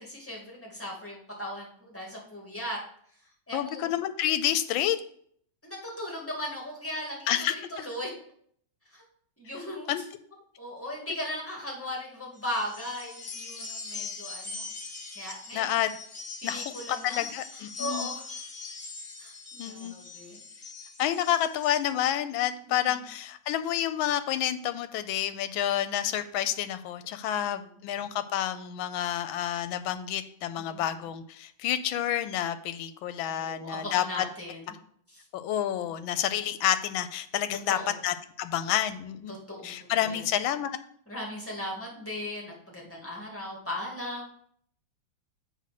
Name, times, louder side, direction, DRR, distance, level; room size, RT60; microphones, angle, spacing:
voice 1, 0.0-2.8 3.5-3.9 5.6-8.1 8.9-9.0 9.4-9.9 10.6-14.7 15.2-15.7 16.4-17.2 17.5-18.2 19.2-20.4 22.6-22.9 27.3-27.7 30.6-31.0 33.3-34.7 35.1-35.2 37.7-37.9 39.3-40.2 41.1-44.3, left 1 dB, 5° left, -3 dB, 1.9 m, -38 dB
voice 2, 3.5-5.0 7.3-7.5 9.9-10.0 15.5-15.9 16.4-16.7 17.0-18.1 19.6-20.0 21.0-34.2 35.3-37.8 38.0-39.3 39.6-40.7, left 11 dB, 80° left, 11 dB, 1.3 m, -29 dB
sound 1, 12.4-21.8, left 4 dB, 30° left, 1.2 m, -41 dB
7.3 x 3.8 x 5.8 m, 0.62 s
omnidirectional pair, 2.2 m